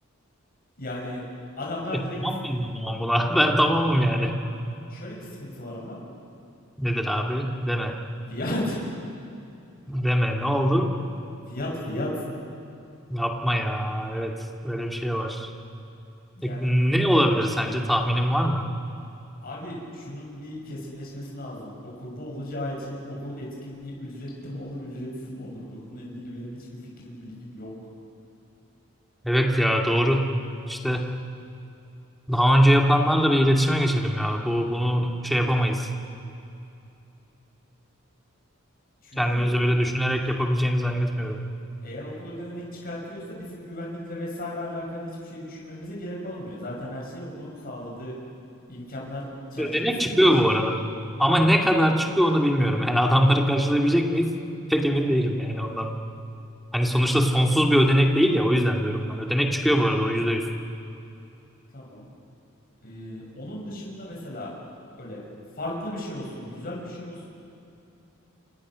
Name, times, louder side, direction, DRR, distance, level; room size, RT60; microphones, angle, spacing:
voice 1, 0.8-1.2 1.6-2.2 4.9-6.0 8.3-8.9 11.5-12.2 16.4-16.7 19.4-27.7 39.0-39.5 41.8-48.2 48.7-50.5 61.7-62.1 62.8-64.5 64.9-65.2 65.5-67.3, left 1 dB, 45° left, -3 dB, 7.0 m, -35 dB
voice 2, 2.2-4.4 6.8-7.9 9.9-10.9 13.1-15.5 16.4-18.7 29.2-30.3 30.7-31.1 32.3-35.9 39.2-41.4 49.6-50.7 51.2-54.3 54.7-55.9 56.7-60.4, equal, ahead, 1 dB, 2.4 m, -22 dB
29.5 x 28.0 x 6.4 m, 2.7 s
head